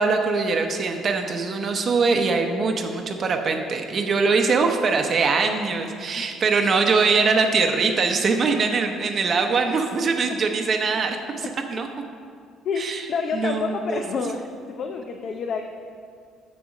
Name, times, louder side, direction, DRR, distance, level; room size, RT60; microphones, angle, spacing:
voice 1, 0.0-11.9 12.8-13.1 13.3-14.3, right 4 dB, 45° right, 4 dB, 0.7 m, -22 dB
voice 2, 12.6-15.6, left 5 dB, 55° left, 4 dB, 0.6 m, -28 dB
6.7 x 6.3 x 6.0 m, 2.2 s
supercardioid pair, 70°, 0 cm